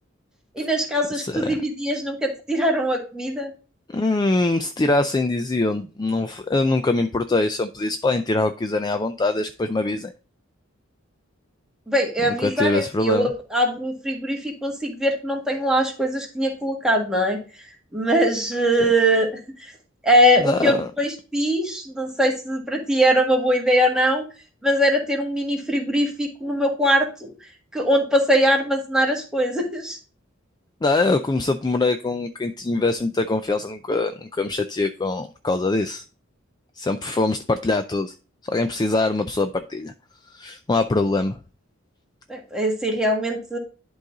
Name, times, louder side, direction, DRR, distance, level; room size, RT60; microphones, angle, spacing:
voice 1, 0.5-3.5 11.9-17.4 17.9-19.7 20.0-24.2 24.6-27.3 27.7-30.0 42.3-43.6, equal, 5° right, 1.6 m, -22 dB
voice 2, 1.1-1.5 3.9-10.1 12.2-13.3 20.4-20.9 30.8-36.0 36.8-38.1 38.4-39.9 40.3-41.4, left 2 dB, 20° left, 0.4 m, -23 dB
11.0 x 3.9 x 3.8 m
head